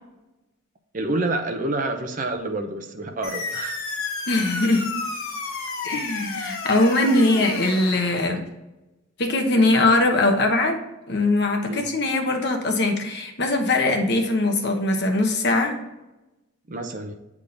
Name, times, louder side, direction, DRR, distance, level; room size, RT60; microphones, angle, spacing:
voice 1, 0.9-3.8 11.7-11.8 16.7-17.1, right 2 dB, 40° right, 5 dB, 0.7 m, -28 dB
sound 1, 3.2-8.2, left 4 dB, 80° left, 1.1 m, -32 dB
voice 2, 4.3-4.9 5.8-8.4 9.2-10.8 11.1-15.8, left 2 dB, 50° left, 3 dB, 1.0 m, -21 dB
8.3 x 3.7 x 3.9 m, 1.0 s
head